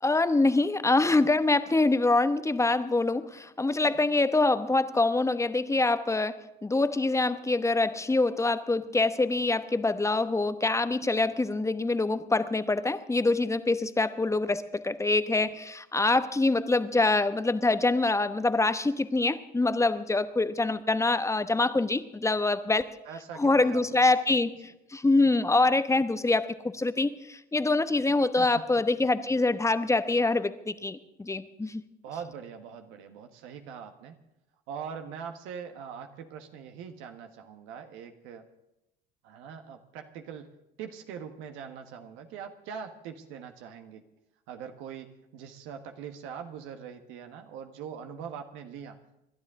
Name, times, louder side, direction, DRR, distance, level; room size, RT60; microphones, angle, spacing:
voice 1, 0.0-22.8 23.4-31.8, left 2 dB, 15° left, 12 dB, 1.0 m, -25 dB
voice 2, 23.0-24.1 24.6-24.7 28.4-28.6 32.0-34.2 34.7-38.5 39.2-40.5 40.8-44.0 44.5-49.0, right 7 dB, 70° right, 6 dB, 1.4 m, -42 dB
27.0 x 12.0 x 3.7 m, 0.86 s
hypercardioid pair, 65°, 21 cm